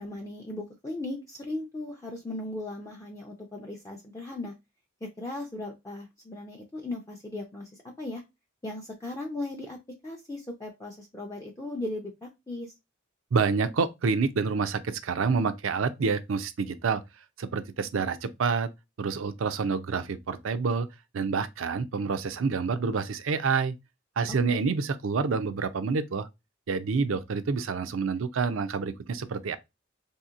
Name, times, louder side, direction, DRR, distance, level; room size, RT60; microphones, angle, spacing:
voice 1, 0.0-4.5 5.0-7.7 8.0-8.2 8.6-9.8 10.0-12.7 24.3-24.7, left 2 dB, 15° left, 0.4 m, -37 dB
voice 2, 13.3-17.0 17.4-18.7 19.0-20.9 21.1-23.7 24.2-26.3 26.7-29.6, right 5 dB, 75° right, 0.5 m, -28 dB
3.6 x 2.8 x 2.4 m
head